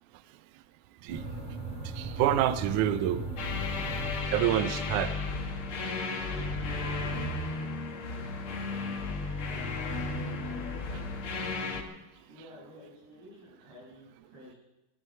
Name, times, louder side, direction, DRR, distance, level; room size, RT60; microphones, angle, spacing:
sound 1, 1.1-4.8, right 1 dB, 70° right, 8.6 m, -38 dB
voice 1, 1.8-3.6 4.3-5.2 9.5-9.7 10.9-11.0, right 11 dB, 85° right, 12 dB, 1.7 m, -28 dB
sound 2, 3.4-11.8, left 3 dB, 55° left, 1.5 m, -34 dB
voice 2, 10.2-10.7 12.3-14.6, left 1 dB, 55° right, -4 dB, 8.4 m, -52 dB
14.0 x 11.0 x 8.9 m, 0.98 s
omnidirectional pair, 4.5 m